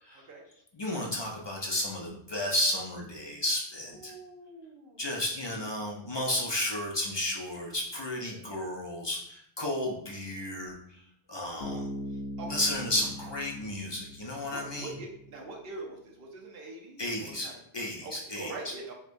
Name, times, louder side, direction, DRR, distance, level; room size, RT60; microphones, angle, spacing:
voice 1, 0.7-4.1 5.0-10.8 11.3-11.9 12.4-14.9 17.0-17.5 17.7-18.7, left 1 dB, 45° left, -1 dB, 0.3 m, -33 dB
voice 2, 3.9-5.2 5.5-5.6 8.2-8.4 12.4-12.5 14.5-17.6 18.0-18.9, right 2 dB, 60° right, 0 dB, 0.9 m, -44 dB
Bass guitar, 11.6-15.1, left 1 dB, 65° left, 0.9 m, -40 dB
4.6 x 2.2 x 2.5 m, 0.71 s
omnidirectional pair, 1.1 m